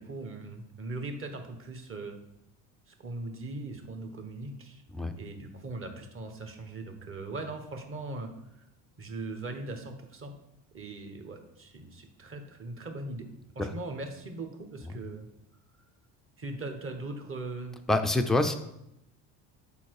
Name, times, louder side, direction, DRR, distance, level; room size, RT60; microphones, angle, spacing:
voice 1, 0.0-2.2 2.9-4.8 5.2-8.6 9.0-10.3 10.7-13.2 13.5-15.3 16.4-17.8, right 2 dB, 30° right, 5 dB, 1.2 m, -40 dB
voice 2, 17.9-18.5, left 2 dB, ahead, 5 dB, 0.4 m, -26 dB
7.0 x 4.5 x 4.7 m, 0.83 s
cardioid pair, 110°, 41 cm